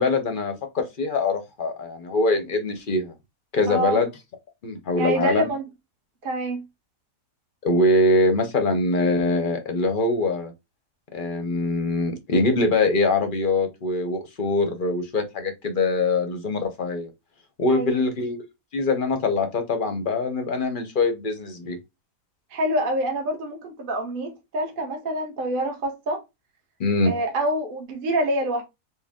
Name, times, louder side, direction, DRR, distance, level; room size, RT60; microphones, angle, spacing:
voice 1, 0.0-3.1 3.5-4.1 4.6-5.5 7.6-10.5 11.1-17.1 17.6-18.4 18.7-21.8 26.8-27.1, left 2 dB, 50° left, 0.6 m, -23 dB
voice 2, 3.7-4.0 5.0-5.6 6.2-6.6 17.7-18.0 22.5-26.2 27.0-28.6, right 1 dB, 45° right, 0.8 m, -26 dB
4.6 x 2.0 x 3.5 m
omnidirectional pair, 1.7 m